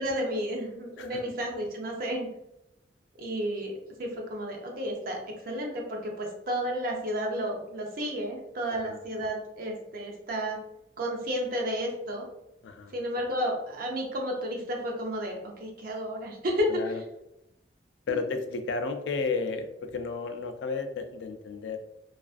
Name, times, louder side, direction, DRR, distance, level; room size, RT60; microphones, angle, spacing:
voice 1, 0.0-2.3 3.2-3.7 4.0-5.2 5.5-10.6 11.0-12.2 12.9-16.9 18.1-18.2, equal, 55° right, 1 dB, 0.5 m, -32 dB
voice 2, 16.7-17.0 18.1-19.7 19.9-21.8, left 4 dB, 80° left, 7 dB, 0.3 m, -32 dB
2.4 x 2.3 x 2.4 m, 0.86 s
head